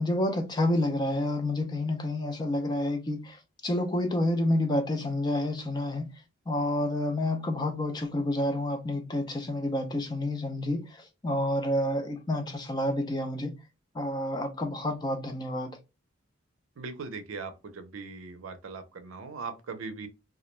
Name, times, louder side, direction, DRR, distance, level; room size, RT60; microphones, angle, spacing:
voice 1, 0.0-6.1 6.5-13.6 13.9-15.7, left 1 dB, 20° left, 0.3 m, -29 dB
voice 2, 16.8-20.1, right 4 dB, 85° right, 0.5 m, -39 dB
2.3 x 2.1 x 2.9 m
head